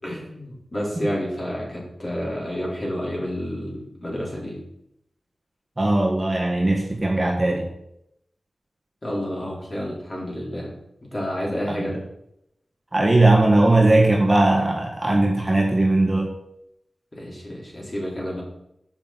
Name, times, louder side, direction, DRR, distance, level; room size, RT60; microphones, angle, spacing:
voice 1, 0.0-4.6 9.0-10.7 11.1-11.9 17.1-18.4, equal, 30° left, -3 dB, 4.1 m, -30 dB
voice 2, 5.8-7.7 11.8-11.9 12.9-16.3, right 2 dB, 20° right, -1 dB, 1.7 m, -19 dB
7.2 x 6.8 x 7.4 m, 0.79 s
wide cardioid pair, 100°, 0 cm